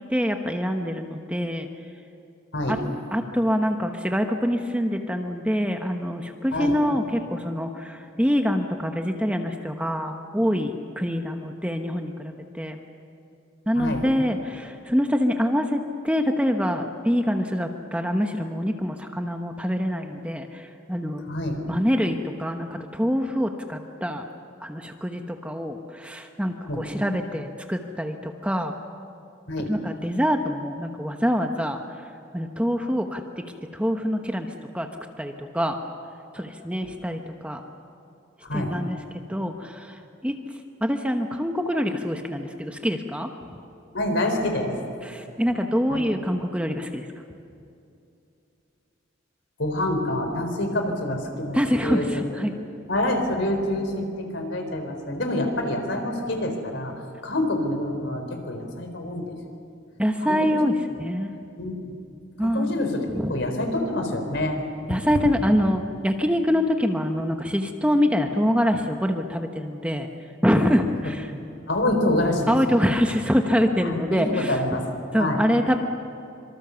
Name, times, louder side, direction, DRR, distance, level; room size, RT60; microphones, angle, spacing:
voice 1, 0.1-1.7 2.7-2.8 3.1-12.8 13.7-20.6 20.9-21.2 21.7-24.3 24.6-28.7 29.7-31.8 32.3-33.2 33.7-34.5 34.7-35.8 36.3-37.6 38.5-39.0 39.3-39.9 40.2-40.4 40.8-43.3 45.1-47.0 51.5-52.5 60.0-61.3 62.4-62.9 63.2-63.3 64.9-70.1 70.4-71.3 72.5-74.5 75.1-75.8, equal, 5° right, 4 dB, 1.1 m, -25 dB
voice 2, 6.5-6.8 13.7-14.0 21.3-21.6 26.7-26.8 29.5-29.7 36.8-36.9 38.4-38.7 43.9-44.7 45.9-46.0 49.6-52.1 52.9-56.9 57.2-59.3 60.2-60.6 61.6-61.9 62.4-64.6 64.9-65.0 71.7-72.9 73.8-74.8 75.2-75.4, left 1 dB, 65° left, 5 dB, 4.1 m, -27 dB
26.0 x 24.5 x 7.0 m, 2.6 s
head